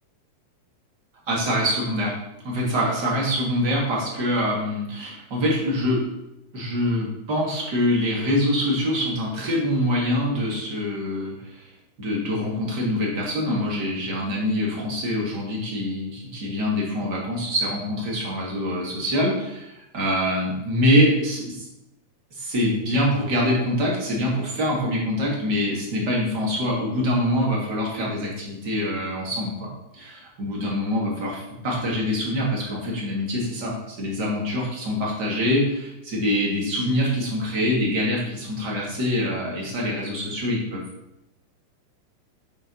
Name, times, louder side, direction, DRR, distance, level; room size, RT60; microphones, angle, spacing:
voice 1, 1.3-2.1 2.4-6.0 6.5-11.7 12.0-21.7 22.3-40.8, left 1 dB, 30° right, -3 dB, 2.7 m, -25 dB
8.8 x 7.9 x 5.6 m, 0.88 s
omnidirectional pair, 4.8 m